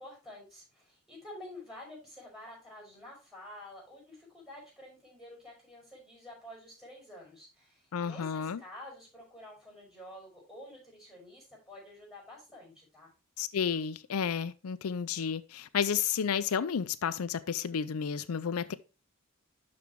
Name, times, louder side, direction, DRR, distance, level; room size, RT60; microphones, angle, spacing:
voice 1, 0.0-13.1, left 1 dB, ahead, 5.6 m, -49 dB
voice 2, 7.9-8.6 13.4-18.7, left 7 dB, 90° left, 0.5 m, -31 dB
12.0 x 4.4 x 3.6 m
head